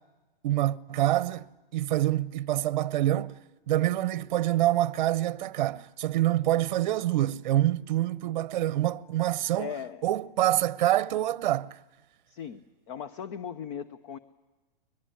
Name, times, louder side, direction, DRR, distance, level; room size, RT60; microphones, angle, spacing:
voice 1, 0.4-1.4 1.7-3.4 3.7-9.7 10.0-11.8, right 14 dB, 50° right, 0.8 m, -26 dB
voice 2, 9.6-10.0 12.3-12.6 12.9-14.2, left 8 dB, 35° left, 0.8 m, -38 dB
22.5 x 21.0 x 9.8 m
hypercardioid pair, 155°, 29 cm